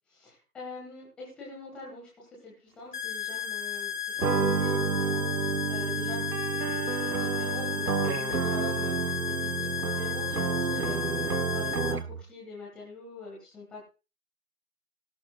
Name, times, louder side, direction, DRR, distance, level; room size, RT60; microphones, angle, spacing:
voice 1, 0.1-13.8, left 3 dB, ahead, -4 dB, 1.5 m, -45 dB
sound 1, 2.9-11.9, left 9 dB, 30° left, 1.3 m, -34 dB
sound 2, 4.2-12.2, right 5 dB, 75° right, 1.1 m, -30 dB
17.0 x 13.5 x 2.3 m, 0.31 s
figure-of-eight pair, 165°, 46 cm